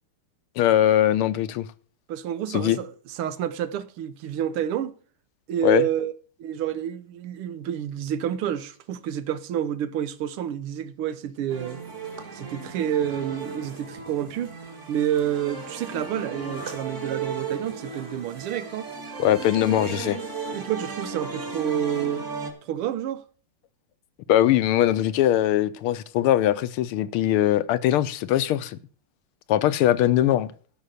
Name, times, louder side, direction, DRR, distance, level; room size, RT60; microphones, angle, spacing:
voice 1, 0.6-1.7 2.5-2.8 5.6-5.8 19.2-20.2 24.3-28.8 29.5-30.5, left 12 dB, 80° left, 1.6 m, -21 dB
voice 2, 2.1-5.0 5.5-6.1 6.4-11.8 12.3-14.6 14.9-18.9 20.5-22.3 22.6-23.2, right 10 dB, 80° right, 1.8 m, -29 dB
sound 1, 11.5-22.5, right 4 dB, 35° right, 1.9 m, -35 dB
13.0 x 6.1 x 6.5 m
omnidirectional pair, 2.4 m